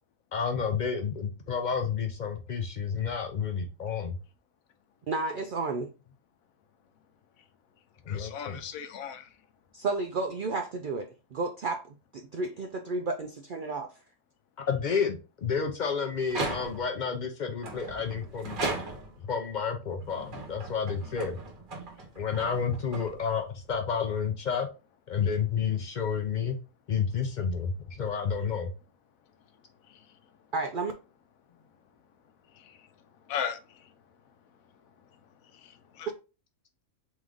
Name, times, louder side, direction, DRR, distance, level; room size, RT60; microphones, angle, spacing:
voice 1, 0.3-4.2 8.1-8.6 14.7-18.6 19.2-21.4 22.2-24.7 25.1-26.6 26.9-28.7, left 6 dB, 65° left, 4 dB, 0.4 m, -30 dB
voice 2, 5.1-5.9 9.7-13.9 30.5-30.9, right 3 dB, 70° right, 5 dB, 0.4 m, -32 dB
voice 3, 8.1-9.3 29.9-30.0 32.5-32.9 33.3-33.9 35.5-36.1, left 8 dB, 85° left, 9 dB, 1.1 m, -37 dB
sound 1, 16.2-17.0 17.6-19.3 20.0-23.5, right 2 dB, 40° right, 1.0 m, -37 dB
3.7 x 3.1 x 3.5 m, 0.31 s
omnidirectional pair, 1.4 m